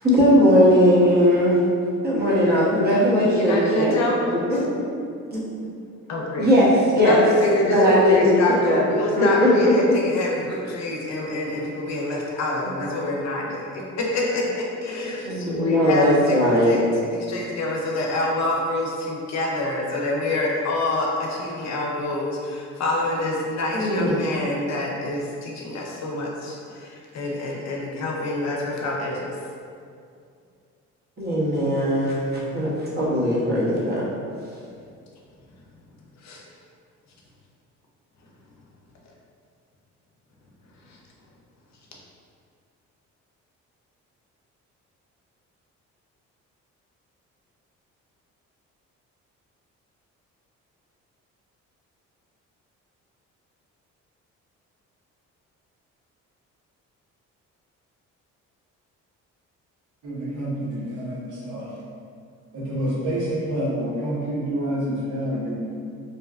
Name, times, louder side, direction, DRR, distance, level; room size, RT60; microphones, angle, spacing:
voice 1, 0.0-1.6 2.0-3.9 4.5-4.8 5.3-5.4 6.4-7.2 7.6-8.8 9.1-9.9 15.3-16.8 23.7-24.2 31.2-34.1, equal, 30° right, -7 dB, 0.9 m, -19 dB
voice 2, 3.4-4.3 6.1-6.5 7.0-16.8 17.1-29.3 36.2-36.4 40.9-41.0, left 1 dB, 55° left, -2 dB, 0.6 m, -26 dB
voice 3, 60.0-61.7 62.5-65.7, right 1 dB, 65° right, -6 dB, 0.8 m, -28 dB
2.6 x 2.2 x 2.4 m, 2.3 s
supercardioid pair, 70°, 33 cm